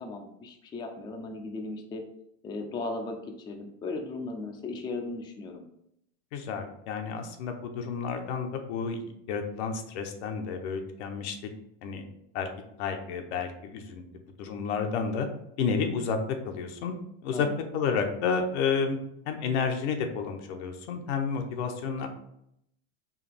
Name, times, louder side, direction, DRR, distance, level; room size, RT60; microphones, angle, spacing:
voice 1, 0.0-2.0 2.4-5.6 17.3-17.6, left 3 dB, 15° left, 3 dB, 0.4 m, -37 dB
voice 2, 6.3-11.4 11.8-12.0 12.3-12.5 12.8-14.0 14.4-15.3 15.6-16.9 17.2-17.5 17.7-19.0 19.3-22.1, left 5 dB, 80° left, 5 dB, 0.9 m, -30 dB
4.8 x 2.9 x 3.3 m, 0.76 s
supercardioid pair, 145°, 33 cm